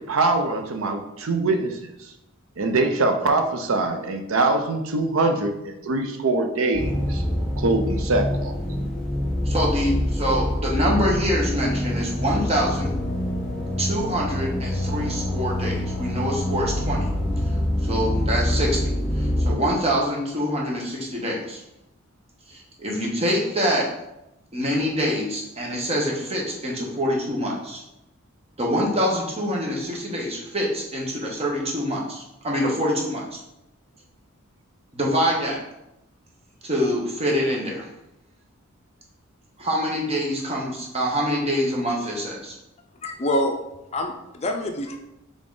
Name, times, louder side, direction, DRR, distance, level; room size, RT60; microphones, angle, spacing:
voice 1, 0.0-1.8 2.6-7.2 7.6-8.5, right 2 dB, 65° right, 6 dB, 0.6 m, -23 dB
sound 1, 6.7-19.5, left 1 dB, 5° left, 1.0 m, -25 dB
voice 2, 9.4-12.9 13.8-17.1 17.8-21.6 22.5-23.9 24.5-27.8 28.6-33.2 34.9-35.6 36.6-37.9 39.6-42.5, equal, 30° right, -2 dB, 0.9 m, -25 dB
voice 3, 43.0-43.7 43.9-45.0, left 1 dB, 30° left, 4 dB, 0.5 m, -26 dB
3.8 x 3.5 x 3.7 m, 0.89 s
head